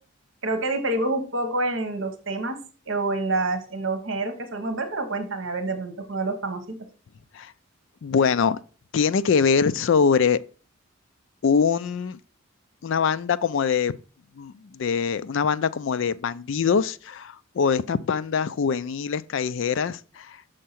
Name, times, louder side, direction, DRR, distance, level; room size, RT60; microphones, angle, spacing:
voice 1, 0.4-2.6 2.9-6.6, right 2 dB, 60° right, 1.1 m, -27 dB
voice 2, 8.0-8.6 8.9-10.4 11.4-12.2 12.8-13.9 14.4-20.4, left 6 dB, 60° left, 0.4 m, -23 dB
6.5 x 4.6 x 5.8 m
head